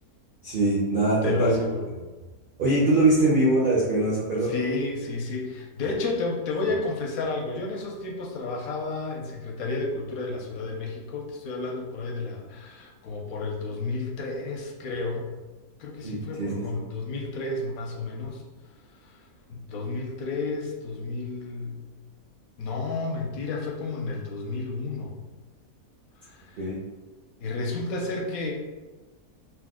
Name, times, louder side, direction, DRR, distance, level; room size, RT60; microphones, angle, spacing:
voice 1, 0.4-1.5 2.6-4.5 16.0-16.8 26.6-26.8, right 2 dB, 65° right, -6 dB, 0.5 m, -23 dB
voice 2, 1.2-1.8 4.4-15.4 15.8-18.4 19.1-19.2 19.5-21.8 22.6-25.1 26.2-26.6 27.4-28.5, left 3 dB, 75° left, -1 dB, 1.0 m, -31 dB
2.9 x 2.0 x 3.5 m, 1.2 s
omnidirectional pair, 1.6 m